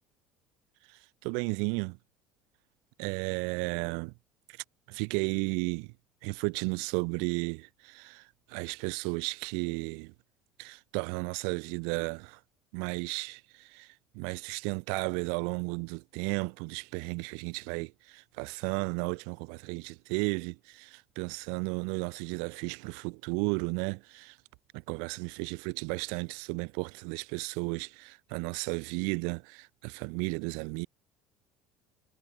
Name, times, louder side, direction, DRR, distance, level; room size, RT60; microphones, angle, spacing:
voice 1, 1.2-2.0 3.0-4.1 4.9-5.9 6.2-8.2 8.5-10.1 10.6-12.4 12.7-13.9 14.1-24.3 24.9-30.9, right 40 dB or more, 80° right, 5.7 m, -34 dB
supercardioid pair, 120°, 0 cm